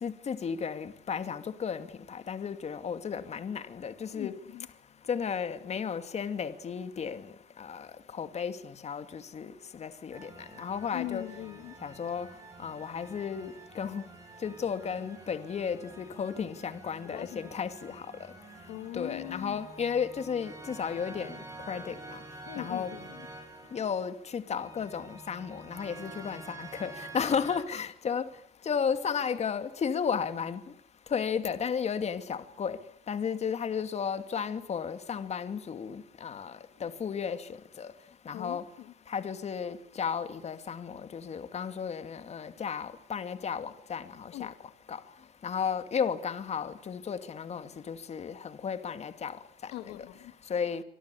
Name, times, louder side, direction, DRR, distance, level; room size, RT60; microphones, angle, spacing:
voice 1, 0.0-4.3 5.1-7.3 7.6-7.9 8.1-10.3 10.6-11.2 11.8-12.3 12.6-14.0 14.4-18.0 18.9-21.4 21.7-21.9 22.6-22.9 23.7-28.3 28.7-30.6 31.1-32.8 33.1-36.5 36.8-37.4 37.8-37.9 38.3-38.6 39.1-44.5 44.9-45.0 45.4-49.4 49.6-49.7 50.5-50.8, left 6 dB, 40° left, 2.5 m, -33 dB
voice 2, 4.1-4.7 10.9-11.8 17.1-17.7 18.7-19.6 22.5-23.2 38.3-38.9 44.3-44.5 49.7-50.3, left 15 dB, 85° left, 2.0 m, -40 dB
sound 1, 10.1-27.6, right 3 dB, 20° right, 7.8 m, -48 dB
27.0 x 25.0 x 8.5 m
cardioid pair, 110°, 17 cm